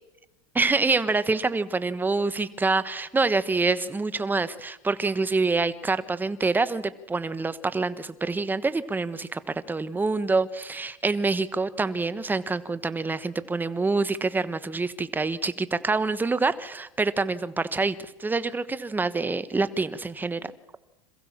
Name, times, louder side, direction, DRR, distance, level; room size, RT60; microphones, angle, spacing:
voice 1, 0.5-9.4 9.7-17.9 18.2-20.5, right 3 dB, 10° right, 14 dB, 1.2 m, -26 dB
26.5 x 15.5 x 7.4 m, 0.99 s
supercardioid pair, 120°, 17 cm